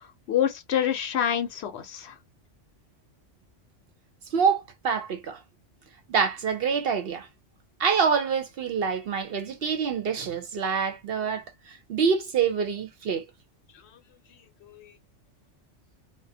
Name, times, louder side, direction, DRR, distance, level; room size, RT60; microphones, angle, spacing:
voice 1, 0.3-2.1 14.6-14.9, left 9 dB, 65° left, 0.9 m, -27 dB
voice 2, 4.3-5.4 6.1-7.3 7.8-11.4 11.9-13.2, right 6 dB, 60° right, 0.7 m, -26 dB
2.4 x 2.2 x 2.6 m
omnidirectional pair, 1.2 m